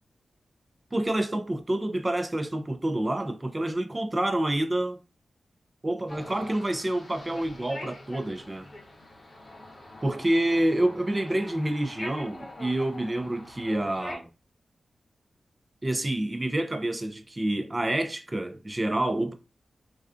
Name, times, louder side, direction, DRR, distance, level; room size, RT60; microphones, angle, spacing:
voice 1, 0.9-5.0 5.8-8.7 10.0-14.3 15.8-19.3, right 1 dB, 25° right, 0.4 m, -28 dB
sound 1, 6.1-14.2, left 2 dB, 50° left, 0.8 m, -44 dB
2.4 x 2.3 x 2.4 m
cardioid pair, 60°, 0 cm